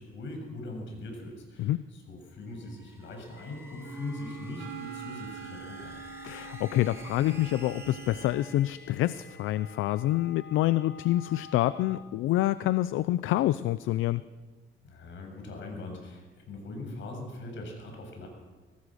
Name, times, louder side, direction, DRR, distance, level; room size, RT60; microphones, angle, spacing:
voice 1, 0.0-6.0 14.8-18.3, left 2 dB, 70° left, 3 dB, 7.4 m, -41 dB
sound 1, 2.3-9.8, right 2 dB, 15° right, 3.6 m, -52 dB
sound 2, 3.4-12.0, left 4 dB, 55° left, 2.0 m, -50 dB
Wind instrument woodwind instrument, 3.8-8.6, right 8 dB, 85° right, 3.9 m, -44 dB
voice 2, 6.2-14.2, left 15 dB, 90° left, 15 dB, 0.6 m, -27 dB
24.0 x 18.5 x 6.5 m, 1.3 s
cardioid pair, 90°, 20 cm